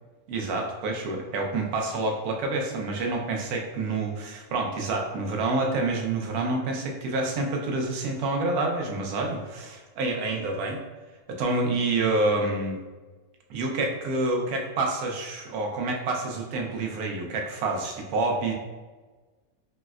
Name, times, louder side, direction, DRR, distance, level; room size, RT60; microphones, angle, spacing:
voice 1, 0.3-10.8 11.3-12.8 13.5-18.5, right 2 dB, 90° right, 1 dB, 1.1 m, -28 dB
4.3 x 2.0 x 2.3 m, 1.3 s
omnidirectional pair, 1.5 m